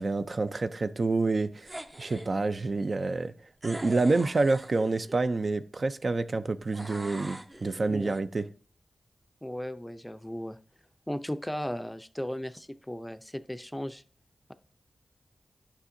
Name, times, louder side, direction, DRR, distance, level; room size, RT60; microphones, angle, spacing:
voice 1, 0.0-3.3 3.6-8.5, right 3 dB, 55° right, 0.4 m, -28 dB
sound 1, 1.6-2.3 3.6-5.2 6.7-8.2, right 1 dB, 30° right, 0.8 m, -43 dB
voice 2, 9.4-10.6 11.1-14.0, equal, 10° left, 0.4 m, -36 dB
9.8 x 5.7 x 2.6 m
cardioid pair, 45°, 0 cm